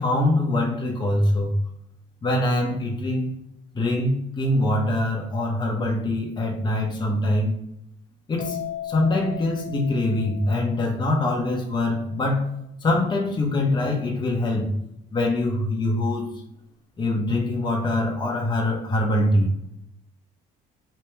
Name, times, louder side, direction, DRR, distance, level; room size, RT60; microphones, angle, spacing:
voice 1, 0.0-1.6 2.2-3.3 3.7-7.5 8.3-12.5 12.8-14.7 15.1-16.3 17.0-19.5, left 1 dB, 25° left, 1.0 m, -23 dB
sound 1, 8.4-12.0, left 11 dB, 80° left, 0.8 m, -38 dB
3.3 x 2.9 x 4.5 m
cardioid pair, 110°, 17 cm